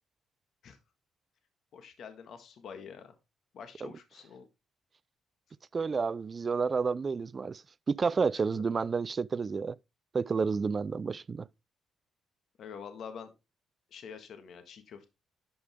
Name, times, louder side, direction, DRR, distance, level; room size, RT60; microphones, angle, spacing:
voice 1, 1.7-3.1 3.5-4.5 8.3-8.6 12.6-13.3 13.9-15.1, left 6 dB, 65° left, 1.6 m, -46 dB
voice 2, 5.7-7.6 7.9-9.8 10.1-11.5, right 5 dB, 35° right, 0.3 m, -30 dB
11.0 x 5.2 x 3.5 m
cardioid pair, 90°, 0 cm